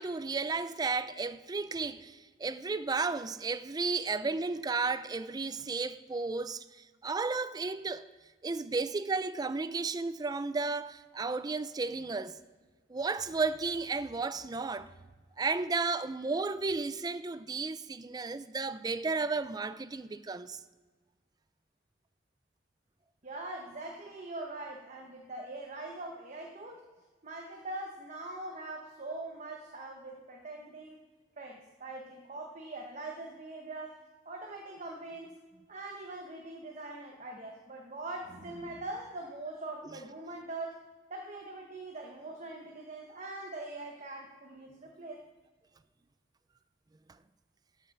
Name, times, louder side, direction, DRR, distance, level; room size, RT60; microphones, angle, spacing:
voice 1, 0.0-8.0 8.4-12.4 12.9-14.9 15.4-20.6, right 4 dB, 20° right, 0.4 m, -33 dB
voice 2, 23.2-26.9 27.2-31.0 31.4-35.4 35.7-45.2, right 2 dB, 40° right, 1.0 m, -42 dB
13.0 x 5.7 x 6.0 m
head